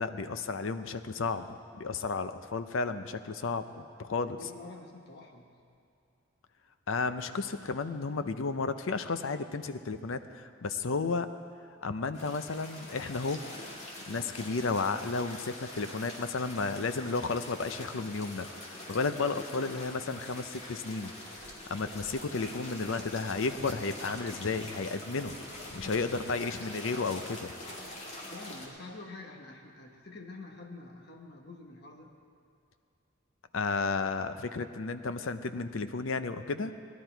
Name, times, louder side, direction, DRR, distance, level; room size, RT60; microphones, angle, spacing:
voice 1, 0.0-4.4 6.9-11.3 11.8-13.4 14.1-21.1 21.7-25.4 25.7-27.5 33.5-36.7, left 4 dB, 75° left, 10 dB, 0.6 m, -33 dB
voice 2, 4.1-5.6 26.2-26.7 28.3-32.1, left 2 dB, 50° left, 1 dB, 1.2 m, -48 dB
sound 1, 12.1-28.7, left 1 dB, 30° left, 2.1 m, -44 dB
18.5 x 11.5 x 4.5 m, 2.5 s
head